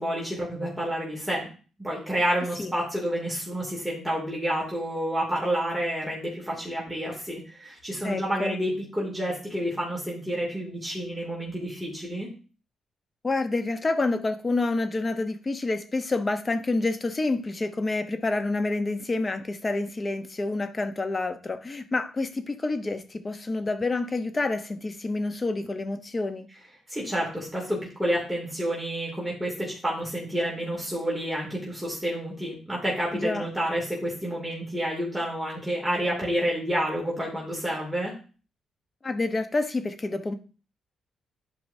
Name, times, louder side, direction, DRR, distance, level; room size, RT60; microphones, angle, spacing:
voice 1, 0.0-1.5 1.8-12.3 26.9-38.1, equal, 5° right, -4 dB, 2.7 m, -29 dB
voice 2, 8.0-8.6 13.2-26.5 33.1-33.5 39.0-40.3, left 2 dB, 30° left, 9 dB, 0.9 m, -28 dB
11.0 x 4.8 x 2.7 m, 0.38 s
cardioid pair, 95°, 0 cm